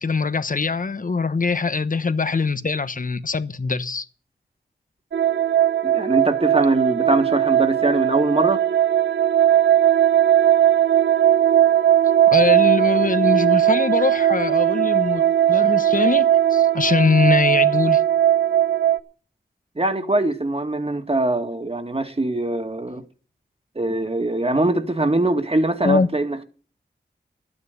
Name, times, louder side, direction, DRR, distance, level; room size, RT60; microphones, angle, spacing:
voice 1, 0.0-4.1 12.3-18.0 25.8-26.1, left 4 dB, 50° left, 1.0 m, -22 dB
sound 1, 5.1-19.0, right 11 dB, 80° right, 0.8 m, -18 dB
voice 2, 5.8-8.6 19.8-23.0 23.8-26.4, right 2 dB, 35° right, 2.2 m, -22 dB
12.0 x 9.8 x 6.8 m
cardioid pair, 40°, 18 cm